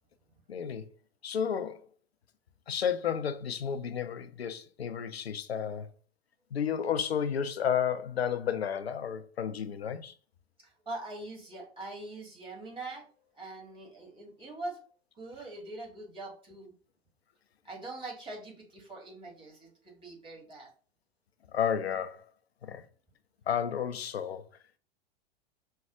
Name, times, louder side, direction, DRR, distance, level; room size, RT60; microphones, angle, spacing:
voice 1, 0.5-0.8 1.2-1.9 2.7-5.9 6.5-10.1 21.5-22.3 22.6-22.8 23.5-24.4, left 8 dB, 75° left, 0.6 m, -32 dB
voice 2, 10.6-14.8 15.1-16.7 17.6-20.7, right 2 dB, 15° right, 2.0 m, -43 dB
5.3 x 2.3 x 3.6 m
figure-of-eight pair, 95°, 32 cm